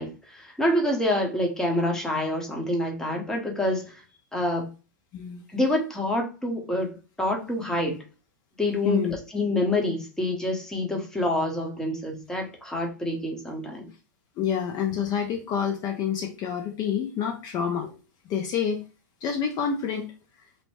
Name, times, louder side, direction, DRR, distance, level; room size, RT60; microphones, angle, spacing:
voice 1, 0.0-4.0 4.3-4.7 5.5-8.0 8.6-9.1 9.3-13.9, left 1 dB, 5° left, 1 dB, 0.8 m, -27 dB
voice 2, 8.8-9.2 14.4-18.0 18.3-18.8 19.2-20.1, left 8 dB, 40° left, 3 dB, 0.5 m, -28 dB
2.6 x 2.1 x 3.1 m, 0.33 s
hypercardioid pair, 110°, 11 cm